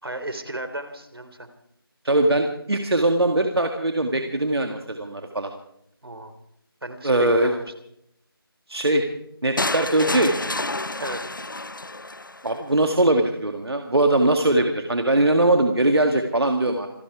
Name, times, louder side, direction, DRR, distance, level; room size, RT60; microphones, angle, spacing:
voice 1, 0.0-1.5 6.0-6.3 6.8-7.6 11.0-11.2, right 1 dB, 75° right, 9 dB, 3.1 m, -34 dB
voice 2, 2.0-5.5 7.0-7.5 8.7-9.0 9.4-10.3 12.4-16.9, right 1 dB, 90° right, 4 dB, 2.1 m, -21 dB
sound 1, 9.6-12.6, left 2 dB, 55° left, 0.8 m, -29 dB
27.5 x 11.0 x 4.8 m, 0.74 s
figure-of-eight pair, 180°, 13 cm